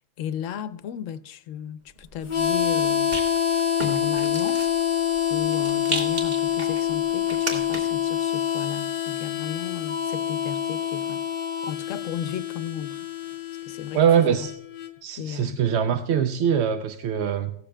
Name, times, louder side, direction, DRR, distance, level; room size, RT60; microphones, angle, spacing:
voice 1, 0.2-3.2 3.8-4.6 5.3-11.2 11.6-13.0 13.6-14.0 14.3-14.5 15.2-15.6, left 9 dB, 75° left, 1.0 m, -34 dB
Rattle, 2.0-8.1, right 1 dB, 35° right, 2.0 m, -36 dB
Harmonica, 2.3-14.9, left 9 dB, 30° left, 0.7 m, -26 dB
voice 2, 13.9-14.5 15.0-17.5, right 8 dB, 65° right, 0.8 m, -22 dB
17.0 x 13.5 x 2.2 m
omnidirectional pair, 1.3 m